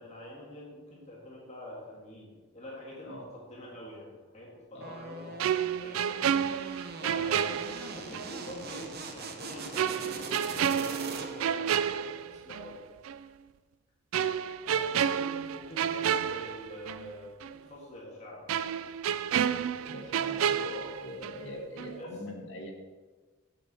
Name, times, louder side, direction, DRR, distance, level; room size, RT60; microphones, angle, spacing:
voice 1, 0.0-6.3 7.0-12.8 15.0-18.6 22.0-22.1, left 1 dB, 30° left, -5 dB, 1.8 m, -46 dB
sound 1, 4.8-11.7, right 4 dB, 45° right, 0.7 m, -41 dB
sound 2, 5.4-8.3 8.7-8.8 9.8-12.7 13.0-13.2 14.1-17.1 17.4-17.5 18.5-21.5 21.8-22.0, right 8 dB, 70° right, 0.3 m, -30 dB
voice 2, 19.8-22.7, left 1 dB, 60° left, -1 dB, 1.8 m, -42 dB
8.4 x 7.1 x 4.2 m, 1.3 s
head